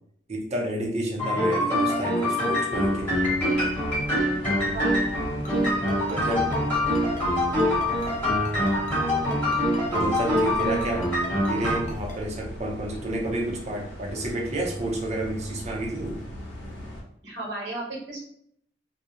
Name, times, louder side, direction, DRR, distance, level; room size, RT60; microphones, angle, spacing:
voice 1, 0.3-3.2 6.1-6.4 9.9-11.1 11.5-16.2, right 1 dB, 40° right, 1 dB, 0.5 m, -30 dB
sound 1, 1.2-11.8, left 1 dB, 10° left, 0.9 m, -24 dB
sound 2, 2.7-17.0, equal, 80° left, 0.8 m, -39 dB
voice 2, 4.6-5.2 5.6-6.2 8.7-9.2 17.2-18.2, right 2 dB, 80° right, -4 dB, 1.1 m, -36 dB
Ringtone, 5.4-12.1, left 2 dB, 45° left, 0.5 m, -40 dB
2.4 x 2.0 x 2.8 m, 0.66 s
head